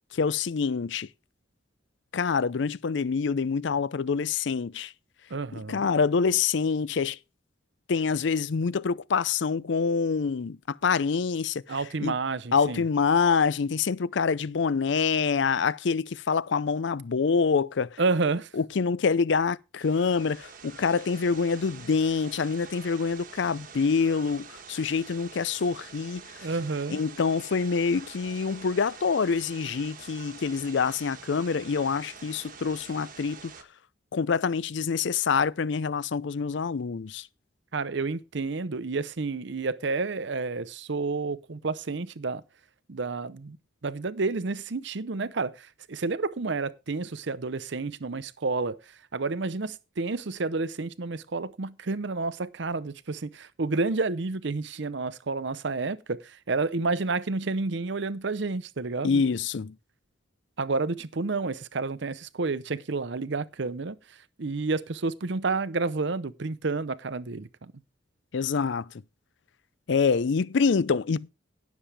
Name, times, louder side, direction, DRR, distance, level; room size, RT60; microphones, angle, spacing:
voice 1, 0.2-1.1 2.1-4.9 5.5-7.2 7.9-12.1 12.5-18.0 18.5-26.5 26.9-33.5 34.1-37.3 59.0-59.7 68.3-68.9 69.9-71.3, left 5 dB, 65° left, 0.4 m, -26 dB
voice 2, 5.3-5.9 11.7-12.8 18.0-18.5 26.4-27.0 37.7-42.4 42.9-43.6 43.8-59.2 60.6-67.7, right 3 dB, 60° right, 0.7 m, -30 dB
sound 1, 19.8-33.6, right 6 dB, 45° right, 1.2 m, -46 dB
17.0 x 7.2 x 3.4 m
head